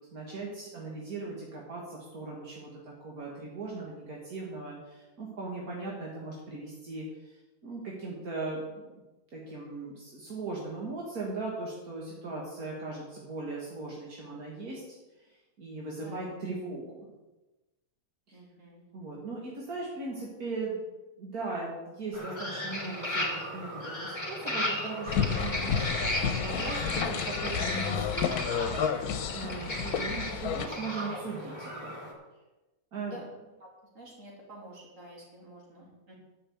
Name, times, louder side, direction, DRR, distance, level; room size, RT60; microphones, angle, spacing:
voice 1, 0.1-9.0 9.3-15.0 15.3-17.1 18.3-18.4 18.9-20.8 21.2-28.4 28.7-28.8 29.3-32.0 32.9-33.2, right 3 dB, 80° right, -3 dB, 2.3 m, -39 dB
voice 2, 18.3-18.8 33.0-33.3 33.6-33.7 33.9-36.1, right 1 dB, 55° right, -3 dB, 3.4 m, -49 dB
sound 1, 22.1-32.1, left 1 dB, 15° left, 2.4 m, -35 dB
sound 2, 25.1-30.7, left 7 dB, 80° left, 1.3 m, -31 dB
10.5 x 6.3 x 8.0 m, 1.1 s
omnidirectional pair, 1.6 m